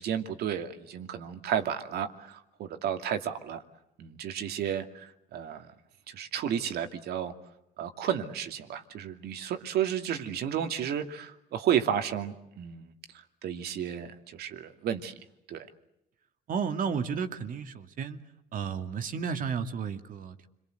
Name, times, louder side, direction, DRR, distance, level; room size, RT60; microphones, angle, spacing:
voice 1, 0.0-3.6 4.0-5.7 6.1-7.3 7.8-12.9 13.4-15.1 15.5-15.7, right 9 dB, 70° right, 8 dB, 2.7 m, -32 dB
voice 2, 16.5-18.2 18.5-20.5, right 6 dB, 55° right, 8 dB, 2.5 m, -32 dB
29.5 x 23.0 x 8.1 m, 0.84 s
cardioid pair, 110°, 17 cm